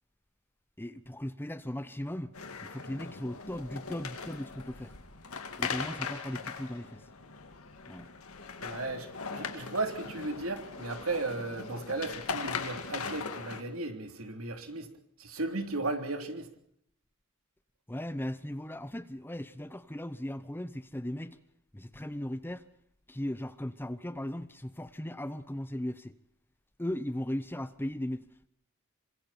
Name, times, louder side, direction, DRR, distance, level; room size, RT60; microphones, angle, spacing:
voice 1, 0.8-2.4 2.6-4.9 5.6-7.0 7.9-8.1 17.9-21.4 21.7-22.6 23.1-26.1 26.8-28.5, left 1 dB, 10° left, 0.9 m, -37 dB
sound 1, 2.3-13.6, left 5 dB, 85° left, 2.4 m, -40 dB
voice 2, 8.6-14.9 15.2-16.5, right 2 dB, 70° right, 3.4 m, -35 dB
27.5 x 25.0 x 4.4 m
head